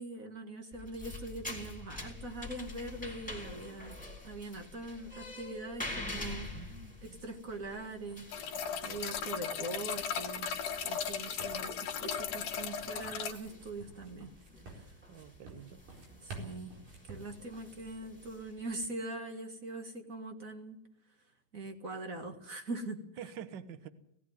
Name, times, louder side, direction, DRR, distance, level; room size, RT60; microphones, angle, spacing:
voice 1, 0.0-6.5 7.0-14.3 14.7-14.9 16.2-16.8 17.1-20.8 21.5-23.0, right 2 dB, 35° right, 5 dB, 1.5 m, -42 dB
sound 1, 0.7-18.8, left 2 dB, ahead, 3.4 m, -47 dB
sound 2, 5.7-18.2, right 2 dB, 85° right, 6.0 m, -54 dB
voice 2, 6.5-7.2 15.1-15.8 23.2-23.9, right 8 dB, 65° right, 11 dB, 1.1 m, -47 dB
sound 3, 8.3-13.3, left 7 dB, 80° left, 2.7 m, -37 dB
18.5 x 15.0 x 9.4 m, 0.76 s
omnidirectional pair, 3.7 m